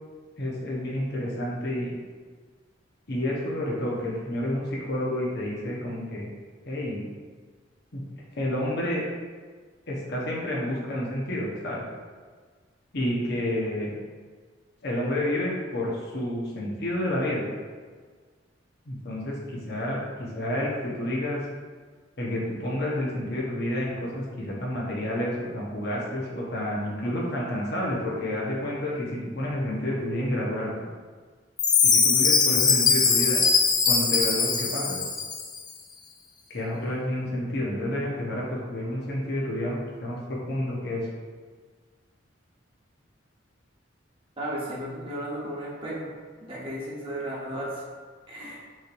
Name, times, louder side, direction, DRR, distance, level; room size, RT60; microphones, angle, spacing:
voice 1, 0.4-2.0 3.1-6.3 6.6-7.1 7.9-8.0 8.4-9.0 9.9-11.8 12.9-13.9 14.8-17.5 18.9-21.4 22.2-30.7 31.8-33.4 33.9-35.0 36.5-41.1, left 1 dB, 60° left, -4 dB, 1.0 m, -29 dB
Chime, 31.6-35.6, left 5 dB, 20° left, 0.4 m, -21 dB
voice 2, 44.4-46.1 46.5-47.8 48.3-48.6, right 1 dB, 30° right, -6 dB, 1.1 m, -34 dB
6.0 x 3.1 x 2.6 m, 1.5 s
head